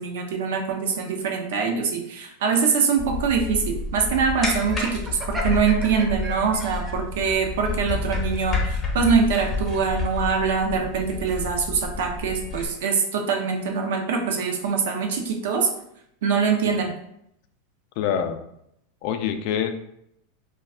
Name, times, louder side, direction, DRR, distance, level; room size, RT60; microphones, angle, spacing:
voice 1, 0.0-15.7 16.2-16.9, right 5 dB, 75° right, 3 dB, 0.5 m, -24 dB
sound 1, 3.0-12.7, left 3 dB, 25° left, 0.6 m, -30 dB
Laughter, 4.6-6.9, equal, 20° right, 0.5 m, -35 dB
voice 2, 18.0-18.4 19.0-19.8, left 8 dB, 60° left, 8 dB, 0.3 m, -25 dB
2.2 x 2.2 x 3.6 m, 0.77 s
hypercardioid pair, 115°, 0 cm